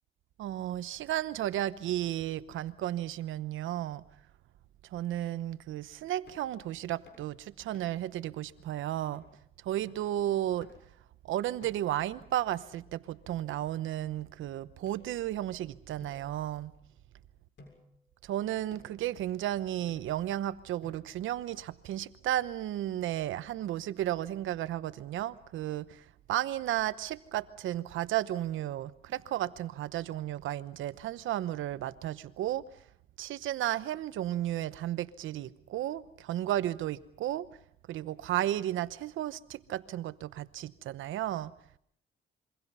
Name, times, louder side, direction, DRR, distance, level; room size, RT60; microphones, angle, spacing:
voice 1, 0.4-4.0 4.8-9.2 9.6-10.7 11.2-16.7 18.2-32.6 33.2-37.5 37.9-41.5, right 13 dB, 80° right, 1.0 m, -33 dB
sound 1, 6.3-6.5 7.1-7.3 7.7-8.1 8.6-8.7 9.1-9.3 9.9-10.1 10.6-11.0 11.6-12.1 12.7-13.4 14.2-14.3 14.8-15.5 16.0-17.0 17.6-18.0 18.7-19.1 19.9-20.3 20.8-21.3, left 2 dB, 65° left, 7.2 m, -58 dB
27.0 x 24.0 x 5.6 m
cardioid pair, 90°, 20 cm